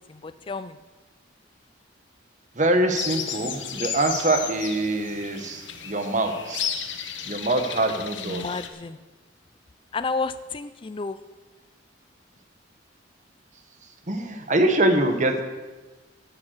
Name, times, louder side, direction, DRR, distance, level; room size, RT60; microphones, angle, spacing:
voice 1, 0.1-0.8 7.9-9.0 9.9-11.2, left 4 dB, 25° left, 12 dB, 0.4 m, -31 dB
voice 2, 2.5-6.7 7.2-8.5 14.1-15.4, right 2 dB, 40° right, 6 dB, 1.3 m, -24 dB
sound 1, 2.9-8.7, left 8 dB, 70° left, 1.3 m, -33 dB
16.0 x 7.2 x 6.5 m, 1.2 s
head